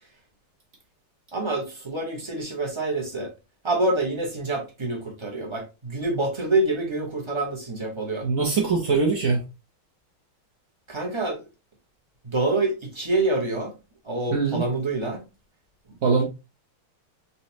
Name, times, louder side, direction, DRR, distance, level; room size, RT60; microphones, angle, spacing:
voice 1, 1.3-3.3 3.6-8.3 10.9-11.5 12.2-13.7 14.0-15.3, right 2 dB, 25° right, 0.6 m, -26 dB
voice 2, 8.2-9.4 14.3-14.6 16.0-16.2, right 4 dB, 55° right, 1.0 m, -22 dB
4.1 x 3.1 x 2.9 m
omnidirectional pair, 2.3 m